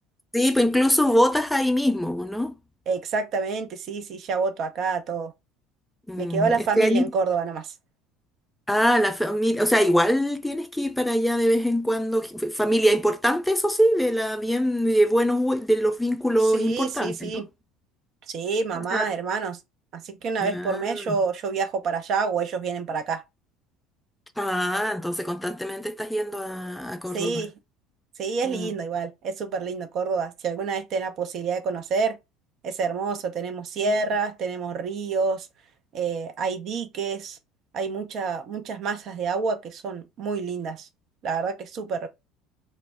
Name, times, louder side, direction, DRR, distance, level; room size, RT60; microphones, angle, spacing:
voice 1, 0.3-2.5 6.1-7.0 8.7-17.4 18.9-19.1 20.4-21.2 24.4-27.4 28.4-28.7 33.8-34.0, equal, 5° left, 0.3 m, -23 dB
voice 2, 2.9-5.3 6.2-7.7 16.4-17.5 18.3-19.6 19.9-23.2 27.1-27.5 28.2-32.2 32.6-35.5 35.9-37.4 37.7-40.9 41.2-42.1, right 5 dB, 50° right, 0.5 m, -28 dB
2.1 x 2.0 x 3.4 m
figure-of-eight pair, 65°, 0 cm